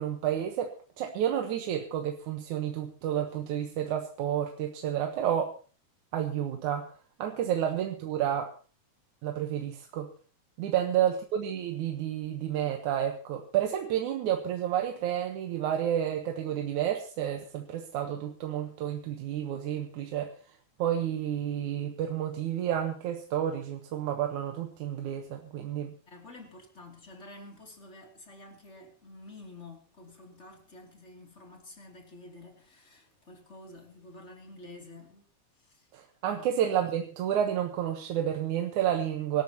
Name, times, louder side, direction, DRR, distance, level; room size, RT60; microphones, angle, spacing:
voice 1, 0.0-5.5 6.1-6.9 7.2-8.5 9.2-10.1 10.6-20.3 20.8-25.9 35.9-39.4, right 10 dB, 80° right, 2.7 m, -30 dB
voice 2, 26.1-35.2 35.6-35.9 36.2-36.6, left 2 dB, 20° left, 3.1 m, -50 dB
24.5 x 13.0 x 3.0 m
omnidirectional pair, 3.4 m